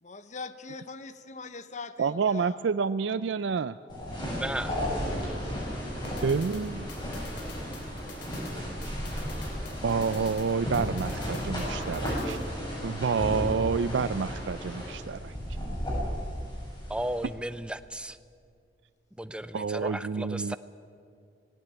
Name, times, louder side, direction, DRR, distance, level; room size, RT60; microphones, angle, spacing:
voice 1, 0.0-2.6, left 4 dB, 40° left, 11 dB, 1.0 m, -41 dB
voice 2, 2.0-3.8 6.2-6.9 9.8-12.4 12.8-15.3 19.5-20.6, right 5 dB, 75° right, 14 dB, 0.4 m, -28 dB
sound 1, 3.9-17.3, equal, 25° left, 7.6 m, -34 dB
voice 3, 4.4-4.7 16.9-18.2 19.2-20.6, right 1 dB, 5° right, 13 dB, 0.6 m, -34 dB
sound 2, 6.0-12.5, left 3 dB, 70° left, 3.7 m, -49 dB
18.0 x 16.5 x 9.1 m, 2.3 s
head